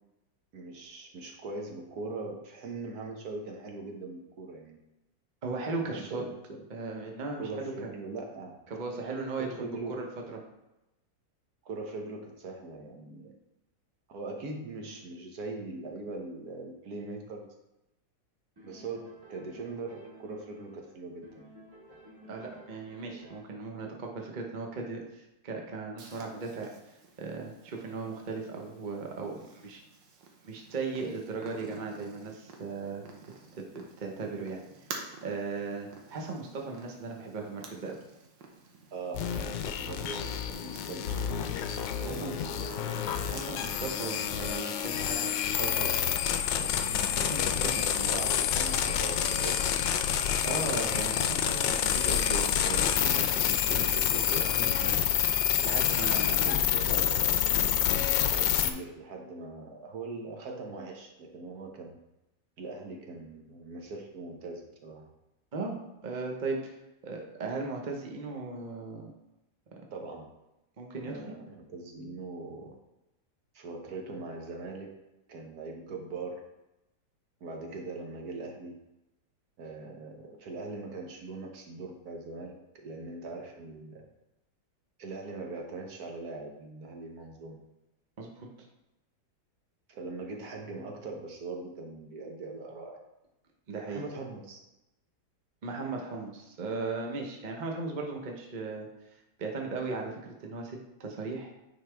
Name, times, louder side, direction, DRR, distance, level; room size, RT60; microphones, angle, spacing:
voice 1, 0.5-4.8 5.8-6.6 7.4-8.6 9.4-10.0 11.6-13.3 14.1-17.5 18.6-21.5 36.2-36.3 38.9-41.1 42.0-42.8 48.1-49.9 56.2-62.0 62.6-65.1 69.9-70.3 71.0-72.8 73.5-74.9 75.3-76.4 77.4-78.8 79.6-82.5 82.8-84.1 85.0-87.6 89.9-93.0 93.9-94.6, right 3 dB, 60° right, 2 dB, 1.3 m, -41 dB
voice 2, 5.4-6.2 6.7-7.7 8.7-10.4 22.3-26.7 27.2-29.8 30.4-33.1 33.5-34.6 35.2-38.0 42.0-42.4 43.3-46.3 46.6-48.2 50.4-55.1 55.4-56.5 65.5-65.8 66.0-66.7 67.0-69.1 70.8-71.3 88.2-88.5 93.7-94.0 95.6-101.5, right 3 dB, 35° right, 1 dB, 0.8 m, -37 dB
sound 1, 18.6-20.9 21.2-23.7, equal, 15° right, 1.5 m, -52 dB
Purr, 26.0-44.0, right 4 dB, 85° right, 1.6 m, -51 dB
sound 2, 39.1-58.7, left 9 dB, 80° left, 1.3 m, -28 dB
9.5 x 4.1 x 3.4 m, 0.95 s
omnidirectional pair, 1.9 m